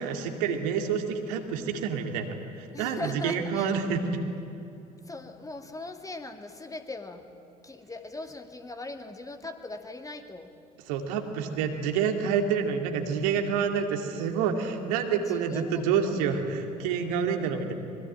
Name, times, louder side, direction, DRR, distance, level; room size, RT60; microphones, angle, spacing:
voice 1, 0.0-4.2 10.9-17.7, right 6 dB, 65° right, 4 dB, 2.4 m, -28 dB
voice 2, 2.7-3.7 5.1-7.2 7.6-10.5 15.3-15.8 16.1-16.2 17.3-17.6, left 2 dB, 15° left, 6 dB, 2.2 m, -40 dB
25.0 x 22.0 x 9.0 m, 2.8 s
figure-of-eight pair, 55°, 21 cm